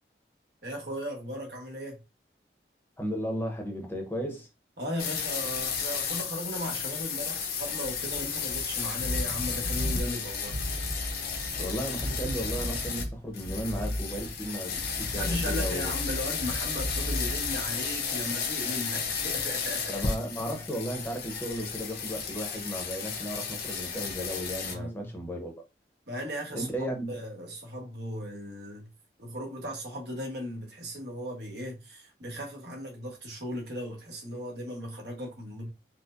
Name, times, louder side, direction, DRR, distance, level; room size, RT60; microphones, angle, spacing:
voice 1, 0.6-2.0 4.8-10.6 15.1-19.9 24.7-25.1 26.1-26.7 27.1-28.9 29.2-35.7, equal, 75° right, 1.2 m, -37 dB
voice 2, 3.0-4.5 11.6-16.0 19.9-25.6 26.5-27.1, equal, 10° left, 0.7 m, -35 dB
sound 1, 5.0-13.0 13.3-24.7, left 6 dB, 55° left, 0.7 m, -33 dB
sound 2, 8.0-18.3, equal, 60° right, 1.7 m, -35 dB
4.4 x 2.1 x 2.5 m
head